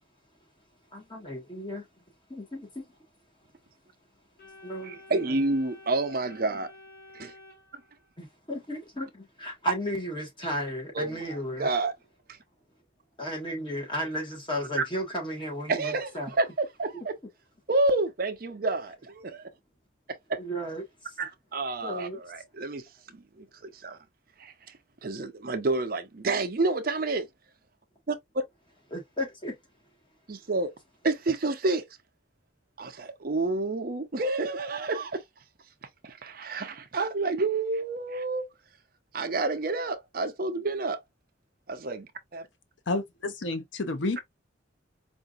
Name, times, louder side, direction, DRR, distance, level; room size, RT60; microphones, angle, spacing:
voice 1, 0.6-2.0 2.3-3.0 3.4-3.5 4.1-5.0 5.3-5.4 8.2-11.7 13.2-16.3 20.4-21.2 21.8-22.4 28.9-29.9, equal, 25° left, 1.5 m, -35 dB
Organ, 4.4-8.3, left 2 dB, 50° left, 1.6 m, -51 dB
voice 2, 4.9-6.7 7.1-7.3 11.0-11.1 11.6-11.9 12.3-12.4 15.7-16.1 16.4-17.1 17.7-19.5 20.3-20.4 21.2-22.8 23.1-24.0 24.4-24.5 25.0-27.3 28.1-28.4 30.3-30.7 31.0-31.9 32.8-35.2 36.0-38.5 39.1-41.0 41.7-42.5, right 3 dB, 50° right, 0.6 m, -29 dB
voice 3, 42.9-44.2, left 2 dB, 75° left, 0.6 m, -30 dB
4.8 x 2.6 x 2.4 m
head